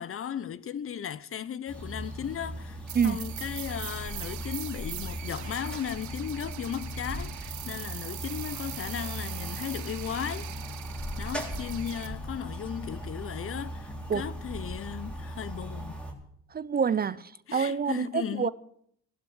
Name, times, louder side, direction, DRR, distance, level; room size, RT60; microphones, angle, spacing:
voice 1, 0.0-10.5 11.2-16.0 17.5-18.5, left 9 dB, 45° left, 0.7 m, -36 dB
sound 1, 1.7-16.1, equal, 5° left, 3.7 m, -38 dB
sound 2, 2.9-12.1, right 13 dB, 70° right, 0.9 m, -42 dB
voice 2, 16.5-18.5, right 6 dB, 30° right, 0.5 m, -27 dB
15.5 x 12.0 x 6.2 m
cardioid pair, 90°, 30 cm